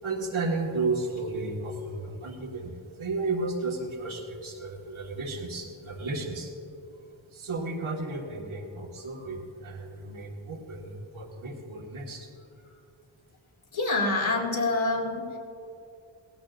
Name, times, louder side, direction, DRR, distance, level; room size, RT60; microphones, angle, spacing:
voice 1, 0.0-6.5 7.3-12.3, right 3 dB, 85° right, 0 dB, 2.0 m, -33 dB
voice 2, 13.7-15.4, left 2 dB, 80° left, -2 dB, 2.7 m, -27 dB
18.5 x 16.5 x 2.6 m, 2.7 s
wide cardioid pair, 85°, 47 cm